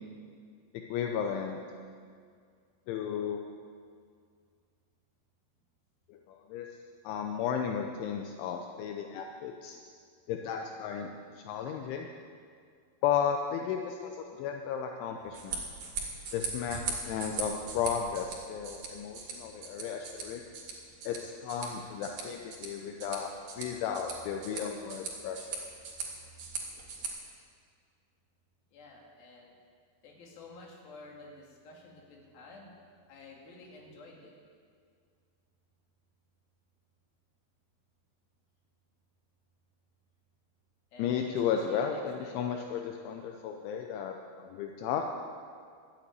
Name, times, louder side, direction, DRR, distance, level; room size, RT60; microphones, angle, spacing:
voice 1, 0.9-1.6 2.9-3.4 6.1-6.7 7.0-9.8 10.3-12.1 13.0-15.7 16.3-20.4 21.0-25.7 41.0-45.1, left 7 dB, 85° left, 3 dB, 3.1 m, -34 dB
sound 1, 15.2-27.1, right 4 dB, 50° right, 2.9 m, -40 dB
voice 2, 28.7-29.5 30.0-32.7 33.1-34.3 40.9-42.4, left 2 dB, 55° left, -1 dB, 3.6 m, -51 dB
12.5 x 8.9 x 9.1 m, 2.2 s
omnidirectional pair, 5.4 m